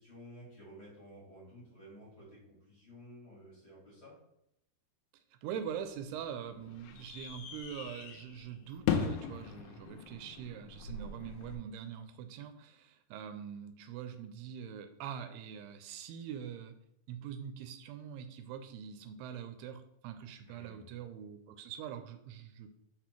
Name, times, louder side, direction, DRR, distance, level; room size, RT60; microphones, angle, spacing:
voice 1, 0.0-4.1 20.4-20.9, equal, 40° left, -6 dB, 2.4 m, -53 dB
voice 2, 5.4-16.8 17.1-22.7, right 8 dB, 85° right, 8 dB, 2.5 m, -43 dB
sound 1, 5.6-11.6, left 7 dB, 85° left, 2.1 m, -39 dB
5.6 x 4.2 x 4.4 m, 0.78 s
omnidirectional pair, 4.7 m